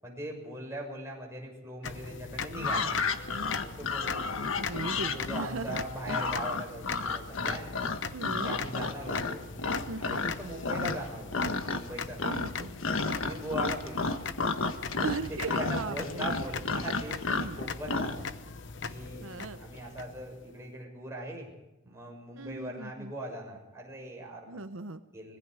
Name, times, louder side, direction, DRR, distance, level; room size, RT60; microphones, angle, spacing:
voice 1, 0.0-2.9 3.6-4.2 4.8-7.9 8.4-12.7 13.2-14.3 14.9-18.2 18.8-19.3 19.6-21.5 21.8-24.6 25.1-25.4, right 1 dB, 15° right, -1 dB, 6.7 m, -40 dB
sound 1, 1.8-20.6, left 5 dB, 60° left, 1.0 m, -40 dB
sound 2, 2.5-10.3 10.6-11.1 11.3-11.9 12.2-18.2, left 3 dB, 80° left, 1.4 m, -32 dB
voice 2, 4.6-5.7 8.1-8.6 9.9-10.3 12.2-12.7 15.0-16.3 17.3-17.6 19.2-19.6 22.4-23.1 24.5-25.0, right 3 dB, 85° right, 10 dB, 0.9 m, -38 dB
25.0 x 22.0 x 5.0 m, 0.98 s
head